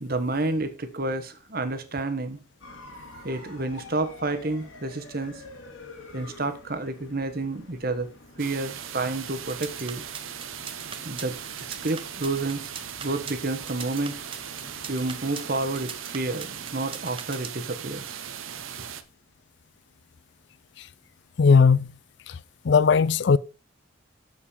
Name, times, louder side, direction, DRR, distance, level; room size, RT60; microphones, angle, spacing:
voice 1, 0.0-2.4 3.2-5.4 6.1-8.1 8.4-10.0 11.0-11.4 11.8-12.7 13.0-14.2 14.9-18.2 18.8-18.9, right 2 dB, 45° right, 1.1 m, -30 dB
sound 1, 2.6-16.7, left 2 dB, 80° left, 2.3 m, -49 dB
sound 2, 8.4-19.0, right 9 dB, 80° right, 0.9 m, -39 dB
sound 3, 9.4-17.7, right 7 dB, 25° right, 0.9 m, -40 dB
voice 2, 21.4-21.9 22.3-22.4 22.6-23.4, left 5 dB, 55° left, 0.4 m, -18 dB
7.2 x 7.1 x 5.1 m
head